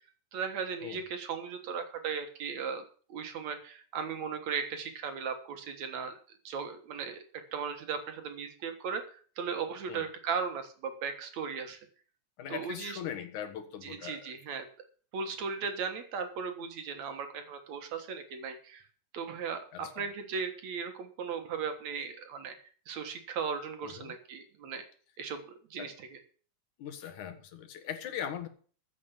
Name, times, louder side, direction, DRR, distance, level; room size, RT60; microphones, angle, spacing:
voice 1, 0.3-2.8 3.1-6.1 6.4-7.2 7.5-11.8 12.5-13.0 13.8-14.7 15.1-18.8 19.1-22.6 22.9-24.8 25.2-25.4 25.7-25.9, right 6 dB, 60° right, 7 dB, 2.6 m, -37 dB
voice 2, 12.4-14.4 19.7-20.1 23.8-24.1 25.8-25.9 26.8-28.5, left 9 dB, 70° left, 8 dB, 2.8 m, -40 dB
14.5 x 7.1 x 6.9 m, 0.43 s
omnidirectional pair, 3.7 m